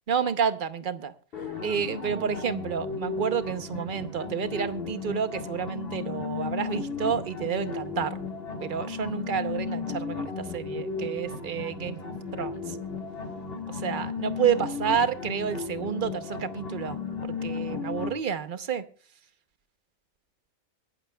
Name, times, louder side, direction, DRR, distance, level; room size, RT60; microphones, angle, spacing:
voice 1, 0.1-1.1 1.6-8.2 8.6-12.1 12.4-12.8 13.7-17.0 17.2-18.8, right 7 dB, 45° right, 11 dB, 0.8 m, -30 dB
sound 1, 1.3-18.1, left 4 dB, 45° left, 1.7 m, -35 dB
24.5 x 12.0 x 2.2 m, 0.39 s
omnidirectional pair, 1.4 m